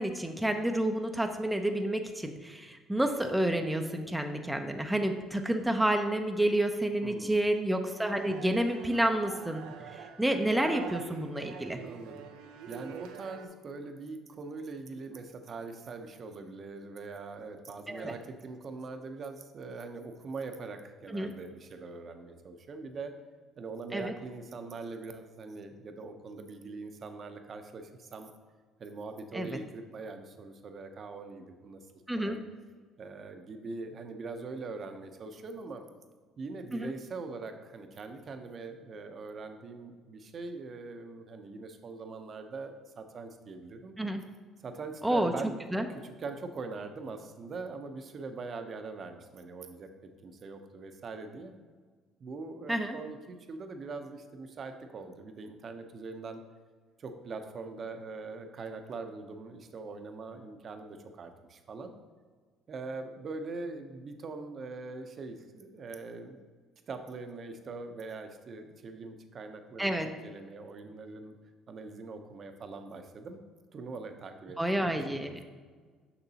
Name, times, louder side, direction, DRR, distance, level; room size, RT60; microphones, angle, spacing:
voice 1, 0.0-11.8 17.9-18.1 21.1-21.3 23.9-24.1 29.3-29.6 32.1-32.4 36.7-36.9 44.0-44.2 45.0-45.3 45.7-45.9 52.7-53.0 69.8-70.1 74.6-75.4, right 1 dB, 5° right, 5 dB, 0.5 m, -29 dB
voice 2, 7.0-7.4 11.8-12.3 12.7-23.1 23.6-28.3 28.8-31.8 32.2-32.4 33.0-35.8 36.4-43.9 44.6-45.6 45.9-49.9 50.2-51.5 52.2-56.4 57.0-61.9 62.7-66.4 66.9-71.3 71.7-73.4 73.7-74.6 74.8-75.4, right 3 dB, 45° right, 7 dB, 0.7 m, -42 dB
sound 1, 7.8-13.5, right 8 dB, 90° right, 0.5 m, -45 dB
6.8 x 5.9 x 2.8 m, 1.5 s
cardioid pair, 90°, 0 cm